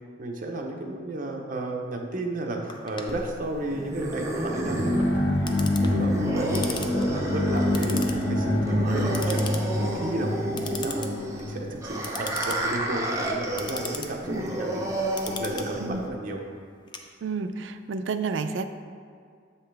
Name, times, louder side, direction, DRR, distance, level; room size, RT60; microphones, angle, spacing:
voice 1, 0.2-11.0 11.3-14.9 15.3-16.4, right 1 dB, 45° right, 1 dB, 0.8 m, -33 dB
Clock, 2.7-17.6, left 5 dB, 25° left, 0.4 m, -40 dB
sound 1, 3.1-16.1, right 1 dB, 15° right, 0.7 m, -31 dB
sound 2, 4.7-12.4, left 1 dB, 75° left, 1.3 m, -26 dB
voice 2, 17.2-18.6, right 4 dB, 80° right, 9 dB, 0.4 m, -30 dB
7.5 x 5.6 x 3.4 m, 2.2 s
head